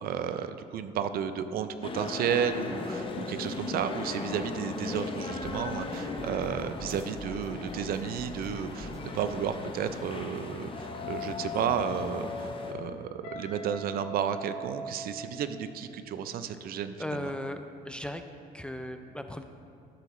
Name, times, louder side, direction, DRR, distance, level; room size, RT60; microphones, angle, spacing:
voice 1, 0.0-17.3, right 8 dB, 60° right, 11 dB, 0.5 m, -32 dB
sound 1, 1.8-12.7, left 3 dB, 30° left, 0.8 m, -37 dB
sound 2, 4.0-9.0, right 1 dB, 20° right, 0.7 m, -46 dB
Guitar, 13.2-16.1, right 4 dB, 85° left, 1.7 m, -42 dB
voice 2, 17.0-18.2 18.5-19.4, left 1 dB, 5° left, 7 dB, 0.4 m, -36 dB
11.5 x 6.8 x 3.1 m, 2.4 s
cardioid pair, 110°, 17 cm